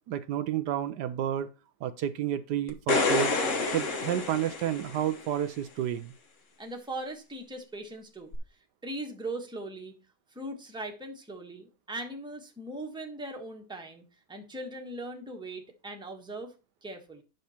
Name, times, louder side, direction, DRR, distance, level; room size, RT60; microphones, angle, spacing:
voice 1, 0.1-1.5 1.8-3.4 3.7-6.1, right 11 dB, 75° right, 12 dB, 1.2 m, -30 dB
sound 1, 2.7-5.2 8.3-8.4, left 3 dB, 50° left, 1.4 m, -28 dB
voice 2, 6.6-8.3 8.8-9.9 10.3-14.0 14.3-16.5 16.8-17.2, right 1 dB, 5° right, 2 dB, 1.3 m, -39 dB
9.2 x 6.5 x 4.3 m, 0.32 s
omnidirectional pair, 1.9 m